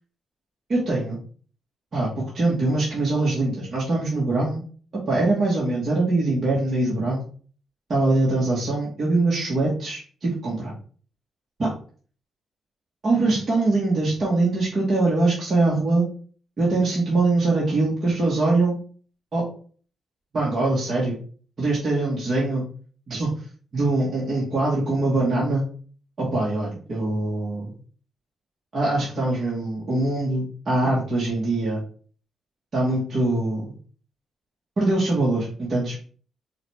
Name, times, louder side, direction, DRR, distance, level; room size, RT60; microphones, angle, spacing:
voice 1, 0.7-1.2 1.9-4.6 5.1-7.2 7.9-10.7 11.6-11.7 13.0-16.0 16.6-18.8 19.3-19.5 20.3-21.2 21.6-22.7 23.1-23.3 23.7-25.6 26.2-27.7 28.7-31.8 32.7-33.7 34.8-36.0, right 2 dB, 40° right, -6 dB, 1.2 m, -23 dB
5.5 x 2.3 x 3.2 m, 0.43 s
cardioid pair, 125°, 0 cm